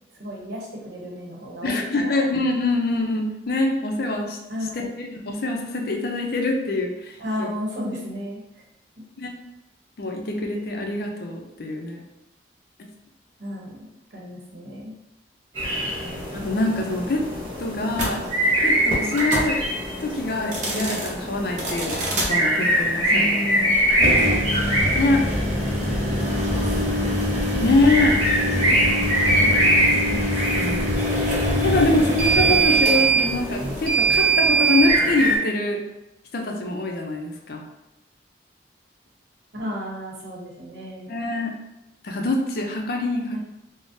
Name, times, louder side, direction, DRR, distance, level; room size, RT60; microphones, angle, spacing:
voice 1, 0.2-2.3 4.5-4.9 7.2-8.6 9.0-9.1 13.4-14.9 23.1-23.8 24.2-25.2 25.9-29.6 39.5-41.1 43.3-43.4, equal, 75° right, -3 dB, 0.8 m, -34 dB
voice 2, 1.6-4.4 5.0-7.5 9.2-9.3 10.0-12.0 16.3-17.2 17.6-18.2 18.6-19.6 20.0-23.4 24.9-25.2 27.6-28.2 30.0-30.9 31.6-35.8 36.3-37.6 41.1-41.5 42.0-43.4, left 2 dB, 55° left, 1 dB, 0.5 m, -24 dB
sound 1, 15.6-35.4, equal, 30° right, 1.0 m, -24 dB
sound 2, 17.9-18.1 19.1-19.5 20.4-21.1 21.6-22.3 23.9-34.9, right 2 dB, 45° right, 0.6 m, -23 dB
3.6 x 2.0 x 2.6 m, 0.95 s
head